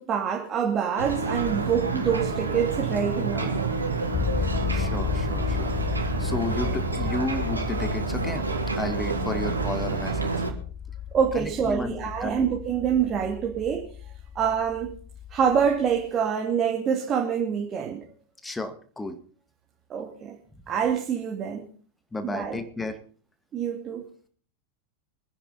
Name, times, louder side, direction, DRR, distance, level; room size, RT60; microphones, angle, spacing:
voice 1, 0.0-3.7 11.1-13.9 14.3-15.0 15.3-18.1 19.9-20.4 20.7-21.7 22.2-22.6 23.5-24.1, right 7 dB, 30° right, 1 dB, 2.5 m, -26 dB
Ocean, 1.0-10.5, right 4 dB, 80° right, 3.3 m, -29 dB
sound 1, 4.1-16.1, left 9 dB, 25° left, 0.6 m, -33 dB
voice 2, 4.4-8.4 8.7-10.3 11.3-11.9 12.2-12.4 18.4-19.2 22.1-23.0, left 2 dB, 10° left, 9 dB, 2.1 m, -33 dB
25.0 x 10.0 x 4.2 m, 0.44 s
figure-of-eight pair, 90°, 0 cm